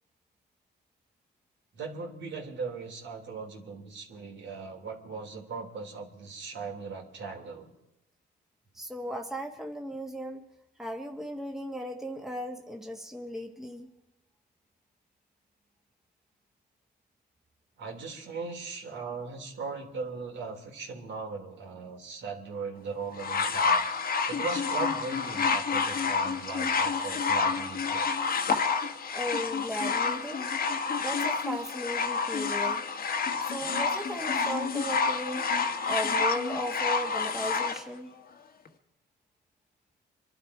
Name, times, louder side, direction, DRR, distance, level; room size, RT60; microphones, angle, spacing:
voice 1, 1.7-7.7 17.8-23.9 24.3-28.1, right 4 dB, 65° right, 2 dB, 3.1 m, -38 dB
voice 2, 8.7-10.4 10.8-13.9 29.1-30.5 31.0-32.9 33.4-35.5 35.8-38.1, equal, ahead, 2 dB, 1.6 m, -36 dB
sound 1, 23.2-37.8 38.7-38.8, left 5 dB, 50° left, 1.4 m, -29 dB
25.5 x 12.0 x 4.8 m, 0.88 s
cardioid pair, 90°, 20 cm